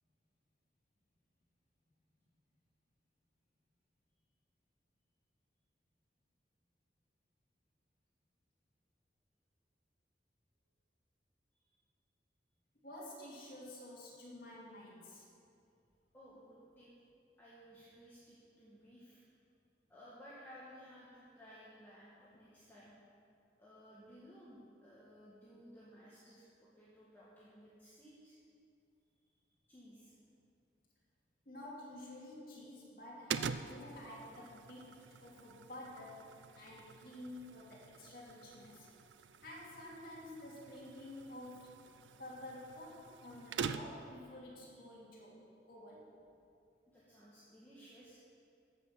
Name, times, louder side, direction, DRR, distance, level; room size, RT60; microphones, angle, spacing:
voice 1, 12.8-15.3 31.4-38.9 39.4-41.7 42.2-46.1, left 1 dB, 50° left, -5 dB, 2.8 m, -51 dB
voice 2, 16.1-16.9 17.4-19.2 19.9-22.9 23.6-28.3 29.7-30.1 44.3-44.8 46.9-48.2, equal, 10° left, -9 dB, 1.7 m, -57 dB
sound 1, 33.3-44.2, right 6 dB, 85° right, 0.4 m, -46 dB
14.0 x 6.2 x 7.4 m, 2.5 s
head